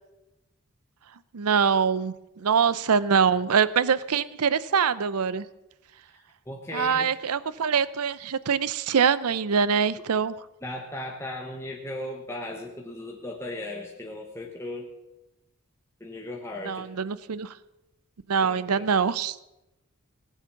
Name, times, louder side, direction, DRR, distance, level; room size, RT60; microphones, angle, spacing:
voice 1, 1.3-5.5 6.7-10.3 16.6-17.5 18.3-19.4, right 6 dB, 85° right, 18 dB, 0.6 m, -24 dB
voice 2, 6.1-7.1 10.6-14.9 16.0-16.9 18.4-18.8, left 1 dB, 10° left, 0 dB, 1.1 m, -37 dB
18.5 x 7.3 x 7.1 m, 0.95 s
head